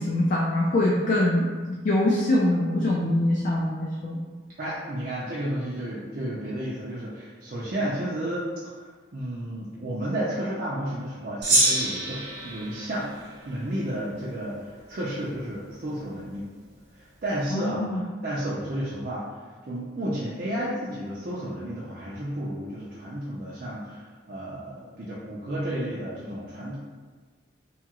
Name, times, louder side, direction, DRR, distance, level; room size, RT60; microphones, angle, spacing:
voice 1, 0.0-4.2 17.5-18.0, left 1 dB, 45° left, -3 dB, 0.3 m, -24 dB
voice 2, 4.6-13.2 13.4-14.6 14.9-16.5 17.0-19.3 19.7-26.8, right 1 dB, 50° right, -8 dB, 0.5 m, -32 dB
Gong, 11.4-14.1, right 1 dB, 75° right, 0.8 m, -26 dB
2.8 x 2.3 x 2.9 m, 1.5 s
head